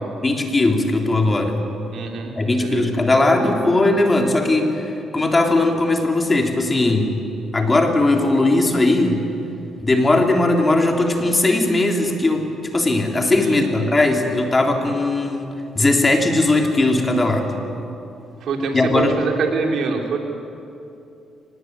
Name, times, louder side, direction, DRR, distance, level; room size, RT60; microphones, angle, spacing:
voice 1, 0.2-1.7 2.4-7.1 7.5-9.2 9.8-15.5 15.8-17.5 18.7-19.2, left 2 dB, 25° left, 2 dB, 3.6 m, -18 dB
voice 2, 1.9-2.9 13.4-13.9 18.4-20.2, right 4 dB, 70° right, 2 dB, 3.7 m, -25 dB
24.0 x 20.0 x 9.7 m, 2.7 s
cardioid pair, 90°, 0 cm